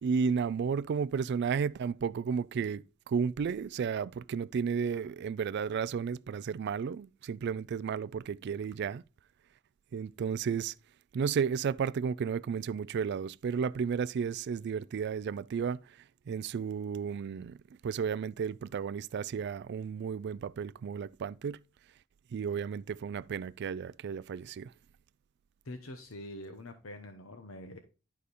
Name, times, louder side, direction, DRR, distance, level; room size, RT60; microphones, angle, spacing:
voice 1, 0.0-9.0 9.9-10.7 11.1-15.8 16.3-17.6 17.8-21.6 22.3-24.7, right 6 dB, 55° right, 0.3 m, -33 dB
voice 2, 25.6-27.8, left 1 dB, 85° left, 1.0 m, -45 dB
11.0 x 5.0 x 4.2 m
head